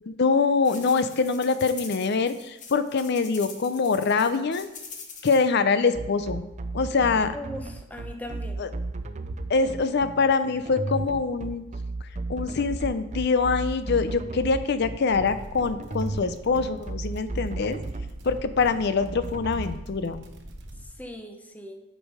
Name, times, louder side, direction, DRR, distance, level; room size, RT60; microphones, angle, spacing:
voice 1, 0.0-4.7 5.2-6.4 6.7-7.3 8.6-8.7 9.5-11.6 12.3-17.8 18.2-20.3, left 4 dB, 60° left, 11 dB, 0.5 m, -24 dB
sound 1, 0.6-5.5, left 5 dB, 40° left, 1.0 m, -43 dB
sound 2, 5.9-19.6, right 2 dB, 35° right, 0.5 m, -34 dB
voice 2, 7.3-8.6 21.0-21.8, left 1 dB, 10° left, 4 dB, 0.7 m, -39 dB
sound 3, 15.1-20.8, right 1 dB, 65° right, 1.1 m, -44 dB
8.5 x 5.4 x 4.9 m, 0.95 s
head